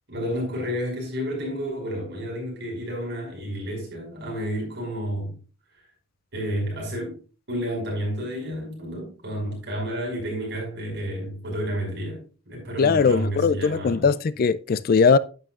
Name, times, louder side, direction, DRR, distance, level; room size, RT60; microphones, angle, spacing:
voice 1, 0.1-5.4 6.3-7.2 7.5-14.1, equal, 55° right, 5.6 m, -30 dB
voice 2, 12.8-15.2, left 5 dB, 45° left, 0.3 m, -20 dB
10.5 x 9.2 x 2.4 m
head